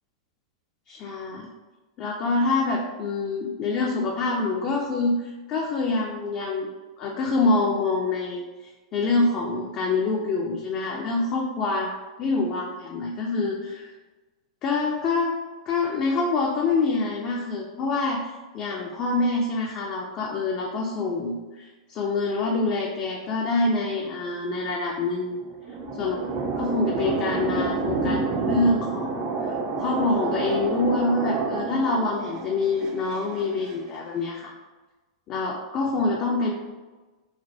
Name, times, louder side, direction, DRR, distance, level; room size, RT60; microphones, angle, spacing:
voice 1, 0.9-1.5 2.0-6.7 7.0-8.4 8.9-11.9 12.2-13.9 14.6-15.4 15.7-25.5 26.0-26.2 26.6-29.5 29.8-34.5 35.3-36.5, left 3 dB, 35° left, -1 dB, 0.4 m, -26 dB
sound 1, 25.3-33.8, right 3 dB, 30° right, 0.4 m, -29 dB
3.2 x 2.2 x 2.6 m, 1.2 s
hypercardioid pair, 120°, 3 cm